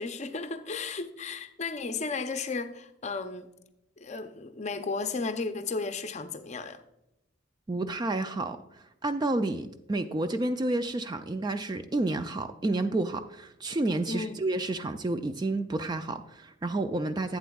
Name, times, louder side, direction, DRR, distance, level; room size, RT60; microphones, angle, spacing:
voice 1, 0.0-3.5 4.0-6.8 14.1-14.4, left 4 dB, 35° left, 0.6 m, -34 dB
voice 2, 7.7-8.6 9.0-17.4, right 2 dB, 20° right, 0.3 m, -30 dB
11.5 x 8.3 x 2.3 m
head